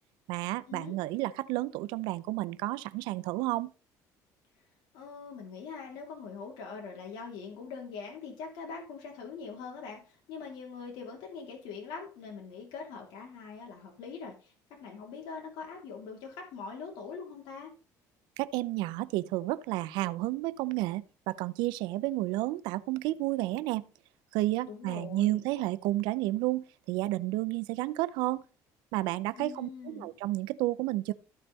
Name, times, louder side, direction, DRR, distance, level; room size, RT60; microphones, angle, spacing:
voice 1, 0.3-3.7 18.4-23.8 24.3-28.4 28.9-31.1, right 17 dB, 85° right, 0.5 m, -31 dB
voice 2, 4.9-17.7 24.7-25.4 29.4-30.1, left 5 dB, 80° left, 2.8 m, -43 dB
13.5 x 5.5 x 4.0 m
cardioid pair, 135°, 7 cm